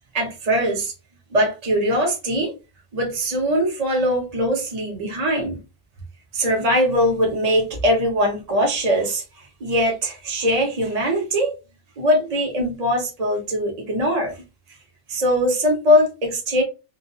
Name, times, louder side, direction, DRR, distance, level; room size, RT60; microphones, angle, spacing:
voice 1, 0.1-0.9 1.3-2.5 2.9-5.6 6.3-9.2 9.6-11.5 12.0-14.4 15.1-16.6, equal, 40° right, 0.9 m, -21 dB
2.5 x 2.5 x 2.6 m
omnidirectional pair, 1.1 m